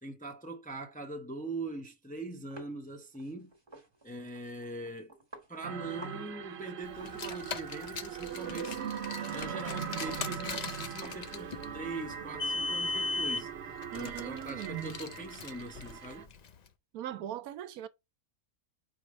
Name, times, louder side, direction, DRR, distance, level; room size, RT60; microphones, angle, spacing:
voice 1, 0.0-3.5 4.0-5.1 5.5-8.8 9.3-16.3, right 2 dB, 10° left, 0.6 m, -42 dB
sound 1, 2.5-6.2 6.5-6.6 6.9-8.3 8.6-8.8 9.1-11.7 12.1-13.5, right 1 dB, 20° right, 1.4 m, -52 dB
sound 2, 5.6-16.2, right 8 dB, 55° right, 0.8 m, -40 dB
Car, 7.0-16.5, left 4 dB, 85° left, 0.3 m, -38 dB
voice 2, 13.9-15.0 16.9-17.9, right 12 dB, 75° right, 1.1 m, -39 dB
4.8 x 4.7 x 5.1 m
omnidirectional pair, 1.6 m